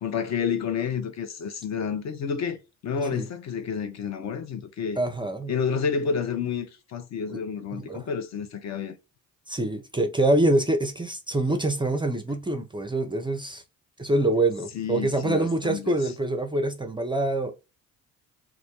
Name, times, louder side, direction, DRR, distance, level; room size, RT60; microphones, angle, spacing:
voice 1, 0.0-2.6 2.8-5.0 5.5-9.0 14.7-16.0, left 6 dB, 40° left, 0.5 m, -30 dB
voice 2, 5.0-5.5 7.3-7.4 7.7-8.1 9.5-13.6 14.0-17.5, right 2 dB, 10° right, 0.4 m, -25 dB
2.2 x 2.1 x 2.8 m
hypercardioid pair, 55°, 42 cm